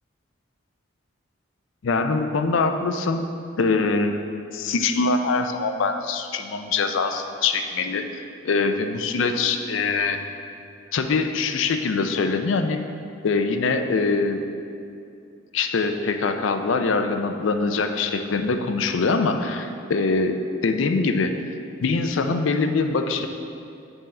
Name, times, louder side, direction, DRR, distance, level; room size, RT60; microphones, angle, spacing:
voice 1, 1.8-3.3 3.6-4.2 4.5-8.0 8.4-10.2 10.9-12.8 13.2-14.4 15.5-20.4 20.6-21.5 21.8-23.3, left 4 dB, 80° left, 7 dB, 0.4 m, -23 dB
7.9 x 3.8 x 4.2 m, 2.6 s
head